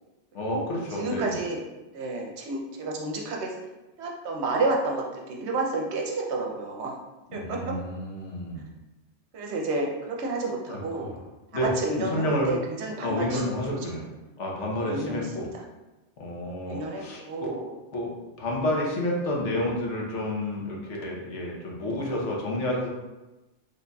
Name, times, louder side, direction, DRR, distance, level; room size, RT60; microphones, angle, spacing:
voice 1, 0.3-1.4 7.3-8.7 10.7-11.2 11.5-12.5 13.0-14.0 14.4-15.5 16.2-17.5 17.9-18.1 18.4-22.9, left 1 dB, 75° left, -2 dB, 1.1 m, -30 dB
voice 2, 0.9-1.6 1.9-3.5 4.0-6.9 7.3-7.7 9.3-11.1 11.6-13.5 14.8-15.5 16.7-17.7, right 2 dB, 70° right, 0 dB, 0.9 m, -30 dB
3.8 x 3.2 x 2.2 m, 1.1 s
omnidirectional pair, 1.2 m